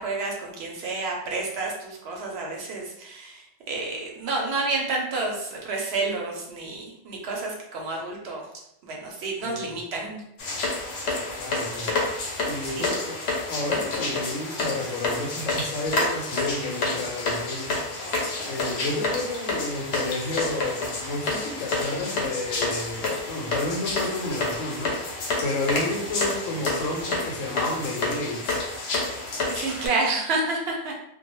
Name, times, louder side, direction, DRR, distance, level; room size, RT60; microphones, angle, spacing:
voice 1, 0.0-8.4 8.8-10.2 12.7-12.9 29.5-30.9, right 3 dB, 65° right, -1 dB, 0.7 m, -29 dB
voice 2, 9.4-9.7 11.4-11.9 12.4-13.2 13.5-17.8 18.5-25.1 25.4-28.6, left 2 dB, 90° left, 1 dB, 1.0 m, -31 dB
sound 1, 10.4-29.9, left 2 dB, 65° left, 0.8 m, -29 dB
2.2 x 2.1 x 2.9 m, 0.78 s
omnidirectional pair, 1.3 m